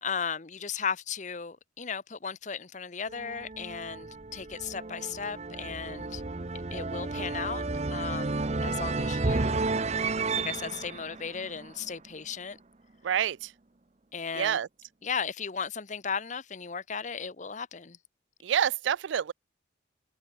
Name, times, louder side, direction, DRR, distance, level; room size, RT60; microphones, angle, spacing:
voice 1, 0.0-6.2 6.7-7.6 7.9-9.6 10.3-12.6 14.1-14.6 15.0-18.0, left 6 dB, 40° left, 0.8 m, -36 dB
sound 1, 3.1-12.1, right 3 dB, 35° right, 0.8 m, -32 dB
voice 2, 13.0-13.5 14.3-14.7 18.4-19.3, right 9 dB, 75° right, 0.4 m, -27 dB
head